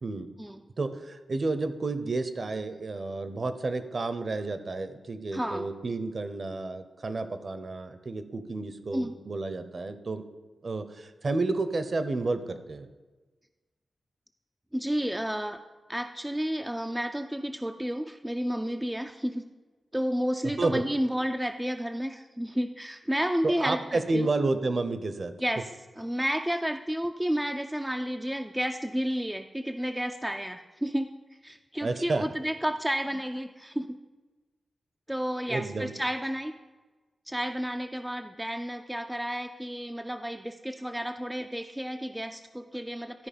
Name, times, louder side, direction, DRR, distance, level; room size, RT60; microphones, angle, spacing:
voice 1, 0.8-10.2 10.6-12.9 20.6-20.8 23.4-25.3 31.8-32.2 35.5-35.9, right 3 dB, 40° right, 10 dB, 0.7 m, -31 dB
voice 2, 5.3-5.7 8.9-9.1 14.7-15.6 15.9-19.4 19.9-24.3 25.4-25.7 26.0-31.1 31.4-34.0 35.1-36.5 37.3-43.3, equal, 5° right, 5 dB, 0.3 m, -31 dB
12.5 x 4.8 x 5.1 m, 1.2 s
wide cardioid pair, 150°, 0 cm